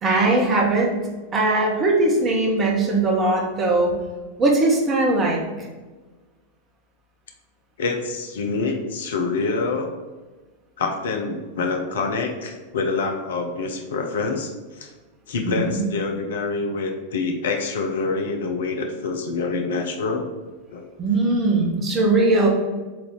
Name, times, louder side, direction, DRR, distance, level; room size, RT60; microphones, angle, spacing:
voice 1, 0.0-0.9 1.3-3.9 4.4-5.4 15.4-15.9 21.0-22.5, right 2 dB, 25° right, 0 dB, 1.3 m, -20 dB
voice 2, 7.8-9.9 10.8-14.5 14.8-14.9 15.3-20.3 20.7-20.9, left 4 dB, 60° left, 4 dB, 0.7 m, -26 dB
7.5 x 2.8 x 4.5 m, 1.3 s
figure-of-eight pair, 90°, 0 cm